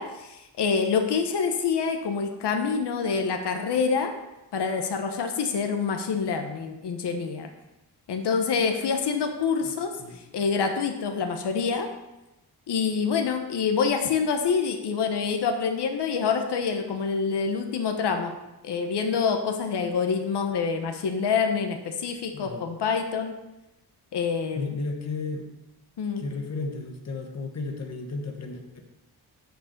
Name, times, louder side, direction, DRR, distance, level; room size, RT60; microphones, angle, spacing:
voice 1, 0.0-4.1 4.5-7.5 8.1-9.9 10.3-11.9 12.7-18.3 18.6-23.3 24.1-24.8 26.0-26.3, left 5 dB, 85° left, 5 dB, 1.0 m, -26 dB
voice 2, 22.3-22.7 24.6-25.4 26.2-28.8, left 3 dB, 40° left, 3 dB, 1.2 m, -34 dB
9.1 x 4.8 x 6.5 m, 0.96 s
wide cardioid pair, 170°, 40 cm